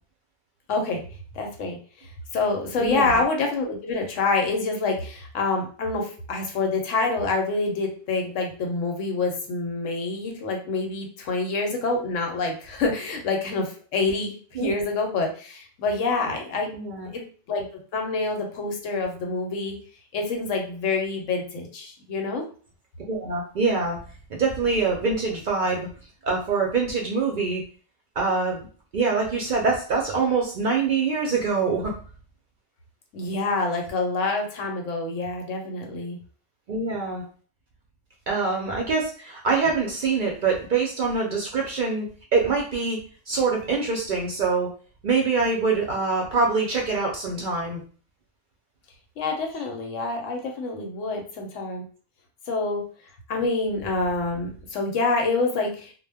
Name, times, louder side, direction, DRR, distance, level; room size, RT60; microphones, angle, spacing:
voice 1, 0.7-1.0 1.3-1.8 2.3-16.7 17.1-17.7 17.9-19.7 20.1-22.5 33.1-36.2 49.2-51.8 52.5-52.8 53.3-55.9, left 3 dB, 90° left, 2 dB, 1.0 m, -27 dB
voice 2, 2.8-3.2 14.6-14.7 16.7-17.1 23.1-24.0 24.4-25.9 26.2-27.6 28.2-28.6 28.9-31.9 36.7-37.2 38.3-42.1 42.3-43.0 43.3-44.7 45.0-47.8, right 4 dB, 60° right, -1 dB, 0.5 m, -24 dB
2.2 x 2.1 x 3.3 m, 0.41 s
omnidirectional pair, 1.3 m